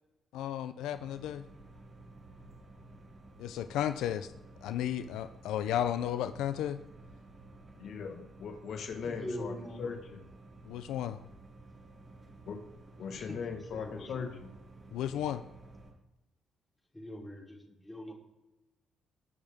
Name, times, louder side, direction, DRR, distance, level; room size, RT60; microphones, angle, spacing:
voice 1, 0.3-1.4 3.4-4.3 4.6-6.8 10.7-11.2 14.9-15.4, left 11 dB, 90° left, 10 dB, 0.5 m, -33 dB
sound 1, 0.9-15.9, right 2 dB, 30° right, 4.7 m, -53 dB
voice 2, 7.8-9.5 9.8-10.2 12.4-12.6 13.0-14.5, left 6 dB, 65° left, 4 dB, 1.5 m, -39 dB
voice 3, 9.1-10.0 13.1-14.3 14.9-15.4 16.9-18.1, left 1 dB, 10° left, -2 dB, 3.6 m, -43 dB
19.0 x 6.6 x 3.6 m, 0.98 s
cardioid pair, 90°, 0 cm